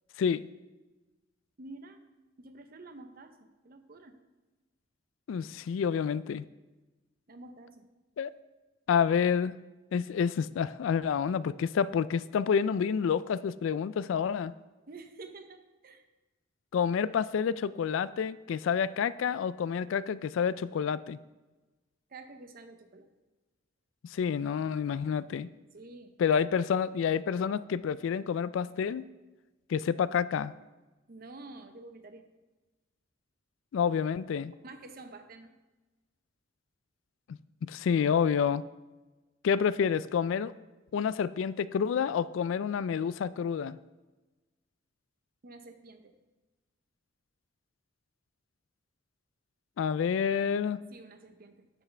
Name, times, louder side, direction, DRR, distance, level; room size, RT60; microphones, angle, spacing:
voice 1, 1.6-2.0 2.4-3.4 3.6-4.2 7.3-7.9 14.9-16.0 22.1-23.1 25.7-26.2 31.1-32.3 34.6-35.5 45.4-46.1 50.9-51.7, right 2 dB, 50° right, 8 dB, 0.8 m, -49 dB
voice 2, 5.3-6.4 8.2-8.3 8.9-9.6 9.9-14.5 16.7-21.2 24.0-25.5 26.2-29.0 29.7-30.5 33.7-34.5 37.6-38.6 39.4-40.5 40.9-43.8 49.8-50.8, left 7 dB, 75° left, 18 dB, 0.3 m, -28 dB
10.5 x 8.0 x 3.3 m, 1.2 s
head